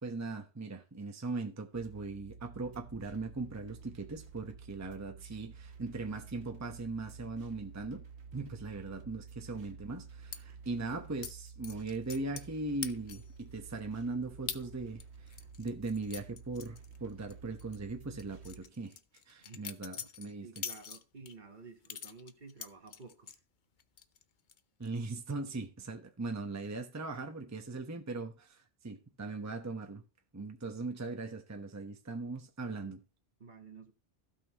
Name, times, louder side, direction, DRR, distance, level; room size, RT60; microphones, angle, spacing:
voice 1, 0.0-8.1 8.3-19.0 19.3-20.6 24.8-30.0 30.3-33.0, right 3 dB, 15° right, 0.9 m, -39 dB
sound 1, 1.7-18.6, right 5 dB, 85° right, 1.3 m, -51 dB
sound 2, 10.3-10.4 11.2-11.3 11.6-12.5 12.8-13.4 13.8-13.9 14.5-14.6 15.0-17.3 17.6-17.8 18.2-21.3 21.9-23.4 23.8-24.2 24.5-24.9, left 7 dB, 55° left, 0.7 m, -43 dB
voice 2, 20.4-23.4 33.4-33.9, right 4 dB, 45° right, 1.3 m, -52 dB
16.0 x 5.7 x 2.9 m
omnidirectional pair, 1.1 m